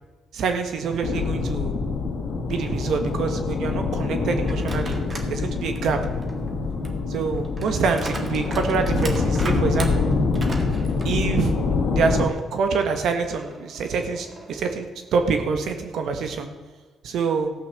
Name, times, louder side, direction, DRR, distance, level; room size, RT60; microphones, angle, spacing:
voice 1, 0.3-1.7 2.5-5.0 5.3-6.1 7.1-10.1 11.0-11.6 11.9-16.5 17.0-17.5, right 5 dB, 75° right, 6 dB, 1.5 m, -25 dB
sound 1, 1.0-12.3, left 4 dB, 70° left, 1.9 m, -25 dB
sound 2, 4.4-5.3 5.8-11.8 12.2-12.3 13.3-14.8, right 2 dB, 35° right, 1.8 m, -38 dB
15.0 x 5.7 x 6.9 m, 1.4 s
cardioid pair, 75°, 0 cm